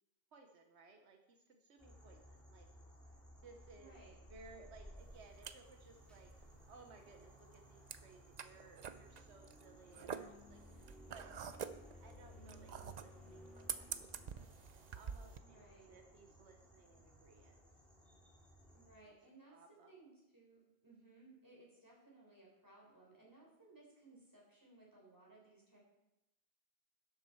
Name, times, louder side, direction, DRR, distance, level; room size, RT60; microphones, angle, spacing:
voice 1, 0.3-2.7 3.4-4.0 4.3-6.3 6.7-10.6 11.1-11.3 11.9-17.6 19.0-19.1 19.5-19.9, right 3 dB, 85° right, 4 dB, 1.3 m, -61 dB
sound 1, 1.8-19.0, equal, ahead, 2.5 m, -59 dB
voice 2, 3.7-4.1 15.4-15.9 18.7-25.8, right 2 dB, 15° right, -4 dB, 4.2 m, -62 dB
sound 2, 5.0-15.4, right 7 dB, 50° right, 0.6 m, -48 dB
12.0 x 7.9 x 4.5 m, 0.93 s
omnidirectional pair, 1.1 m